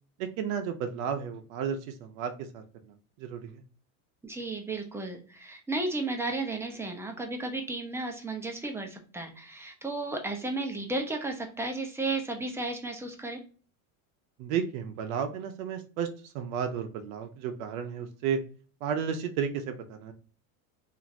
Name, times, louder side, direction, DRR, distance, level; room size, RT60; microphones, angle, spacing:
voice 1, 0.2-3.6 14.4-16.1 16.3-18.4 18.8-20.1, right 7 dB, 75° right, 6 dB, 0.6 m, -33 dB
voice 2, 4.2-13.4, right 2 dB, 5° right, 3 dB, 0.5 m, -34 dB
2.9 x 2.5 x 2.5 m, 0.40 s
supercardioid pair, 110°, 41 cm